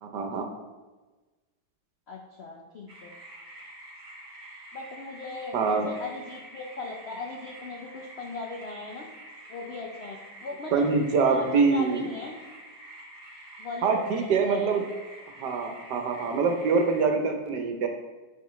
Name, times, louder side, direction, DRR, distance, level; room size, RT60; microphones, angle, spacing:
voice 1, 0.0-0.5 5.5-5.9 10.7-12.1 13.8-14.8 15.4-17.9, right 4 dB, 75° right, 4 dB, 1.4 m, -25 dB
voice 2, 2.1-3.1 4.7-9.0 9.5-10.8 11.2-12.3 13.6-14.8, left 3 dB, 65° left, 0 dB, 0.6 m, -38 dB
sound 1, 2.9-17.1, right 1 dB, 40° right, 1.5 m, -47 dB
10.5 x 4.4 x 3.1 m, 1.2 s
omnidirectional pair, 1.9 m